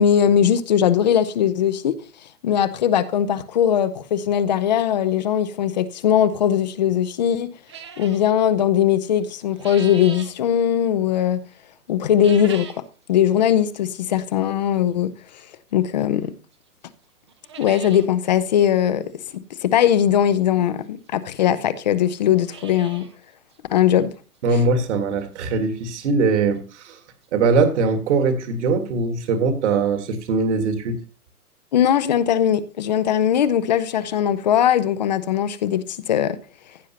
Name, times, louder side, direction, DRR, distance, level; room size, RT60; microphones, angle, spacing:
voice 1, 0.0-2.0 2.4-7.5 8.0-11.4 11.9-12.7 13.1-15.1 15.7-16.3 17.6-19.0 19.3-23.1 23.7-24.1 31.7-36.4, left 9 dB, 30° left, 0.6 m, -20 dB
sound 1, 7.7-8.3 9.2-10.4 12.1-12.9 13.3-13.4 14.2-14.3 16.0-16.1 16.5-16.6 16.9-17.0 17.3-18.1 18.4-18.5 18.7-18.8 20.4-20.5 21.3-21.4 21.5-21.6 22.2-23.2 23.5-23.6 24.1-24.2 24.6-24.7 26.4-26.5 26.7-26.8 27.2-27.3, right 7 dB, 20° right, 0.5 m, -40 dB
voice 2, 24.4-27.0 27.3-31.0, right 4 dB, 50° right, 1.9 m, -21 dB
15.5 x 7.2 x 2.9 m
hypercardioid pair, 140°, 45 cm